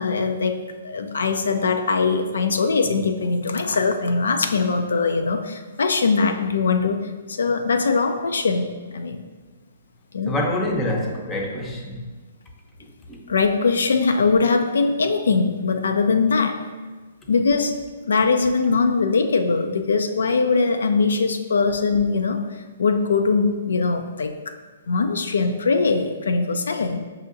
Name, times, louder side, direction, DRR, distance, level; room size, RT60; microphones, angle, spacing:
voice 1, 0.0-9.2 10.1-10.4 13.3-16.6 17.3-17.8 18.1-22.4 22.8-24.3 24.9-27.0, left 4 dB, 75° left, 6 dB, 0.3 m, -21 dB
voice 2, 10.3-12.1 13.1-13.3, left 1 dB, 15° left, 1 dB, 0.6 m, -26 dB
5.6 x 2.8 x 2.5 m, 1.3 s
hypercardioid pair, 130°, 0 cm